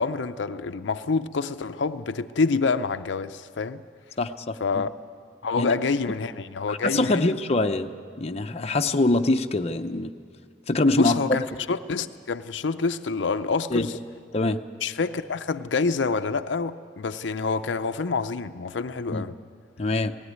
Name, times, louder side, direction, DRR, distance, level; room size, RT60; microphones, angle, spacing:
voice 1, 0.0-3.8 4.6-4.9 5.4-7.4 11.0-13.9 14.8-19.3, left 4 dB, 85° left, 0.6 m, -27 dB
voice 2, 4.2-4.6 5.6-5.7 6.7-7.9 8.2-10.1 10.7-11.4 13.7-13.9 14.3-14.6 19.1-19.2 19.8-20.1, left 2 dB, 35° left, 0.7 m, -23 dB
18.5 x 16.5 x 9.5 m
head